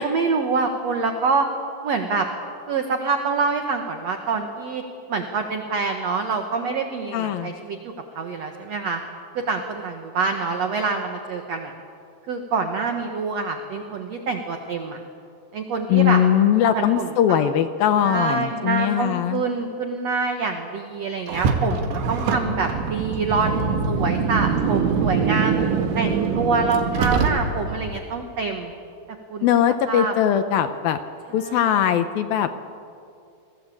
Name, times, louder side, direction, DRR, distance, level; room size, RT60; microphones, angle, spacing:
voice 1, 0.0-1.5 1.8-2.3 2.7-4.8 5.1-9.0 9.3-11.7 12.3-15.0 15.5-16.2 16.7-17.4 18.0-25.5 25.9-28.7 29.3-29.5 29.9-30.1 31.3-31.8, right 4 dB, 60° right, 5 dB, 1.7 m, -26 dB
voice 2, 7.1-7.5 15.9-19.4 29.4-31.0 31.3-32.6, left 10 dB, 80° left, 9 dB, 2.2 m, -20 dB
Car, 21.3-27.8, right 5 dB, 80° right, 4.2 m, -23 dB
29.0 x 21.5 x 8.6 m, 2.4 s
omnidirectional pair, 5.1 m